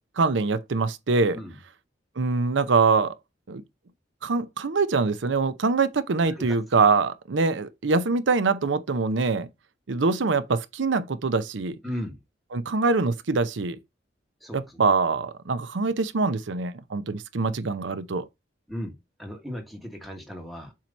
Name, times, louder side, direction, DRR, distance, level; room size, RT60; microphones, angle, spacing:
voice 1, 0.2-1.4 2.2-3.1 3.5-3.6 4.2-9.5 9.9-11.8 12.5-13.8 14.5-18.2, right 4 dB, 90° right, 0.6 m, -24 dB
voice 2, 6.2-6.6 11.8-12.2 14.4-14.8 18.7-20.7, equal, ahead, 1.5 m, -36 dB
7.4 x 2.9 x 5.2 m
head